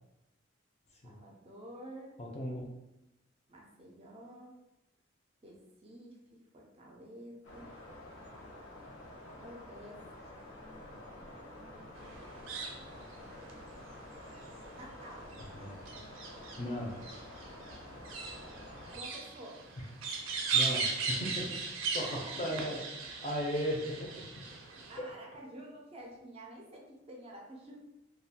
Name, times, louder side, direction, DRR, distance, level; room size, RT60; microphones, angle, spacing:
voice 1, 1.0-2.2 3.5-4.6 5.4-7.7 9.3-10.3 14.7-15.3 18.9-19.6 22.0-22.6 24.9-27.9, right 1 dB, 30° right, -1 dB, 0.4 m, -50 dB
voice 2, 2.2-2.6 15.5-15.8 16.6-17.0 20.5-21.5 21.9-22.1 22.4-22.8 23.2-24.2, equal, 35° left, -1 dB, 0.4 m, -36 dB
sound 1, 7.4-19.0, left 1 dB, 90° left, 0.7 m, -49 dB
sound 2, 12.0-25.0, right 5 dB, 90° right, 0.5 m, -38 dB
2.3 x 2.2 x 2.7 m, 0.95 s
head